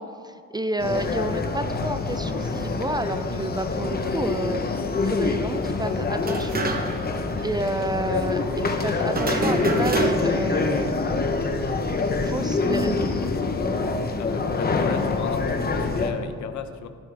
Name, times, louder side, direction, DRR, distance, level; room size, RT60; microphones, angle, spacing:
voice 1, 0.0-4.6 5.0-6.6 7.4-11.4 12.2-13.3, right 2 dB, 15° right, 10 dB, 0.4 m, -30 dB
sound 1, 0.8-16.1, left 4 dB, 30° left, 0.9 m, -26 dB
sound 2, 6.2-7.1 7.4-7.5 9.1-10.5, right 3 dB, 30° right, 1.0 m, -26 dB
voice 2, 14.2-16.9, left 7 dB, 70° left, 10 dB, 0.7 m, -35 dB
12.0 x 9.5 x 3.4 m, 2.2 s
cardioid pair, 90°, 30 cm